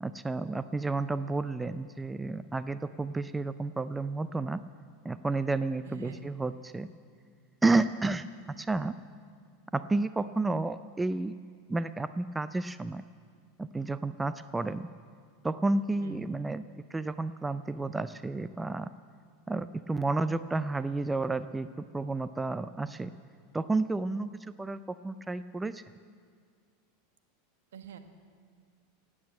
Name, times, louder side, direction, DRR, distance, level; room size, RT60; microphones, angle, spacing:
voice 1, 0.0-4.6 5.0-6.9 7.6-8.3 8.6-8.9 9.7-11.3 11.7-13.0 13.6-14.9 15.4-16.6 16.9-18.9 19.5-23.1 23.5-24.3 24.6-25.8, right 3 dB, 10° right, 13 dB, 0.4 m, -31 dB
voice 2, 5.8-6.2 16.0-16.2 27.7-28.0, right 7 dB, 70° right, 7 dB, 1.3 m, -45 dB
18.0 x 8.7 x 7.5 m, 2.1 s
hypercardioid pair, 90°, 0 cm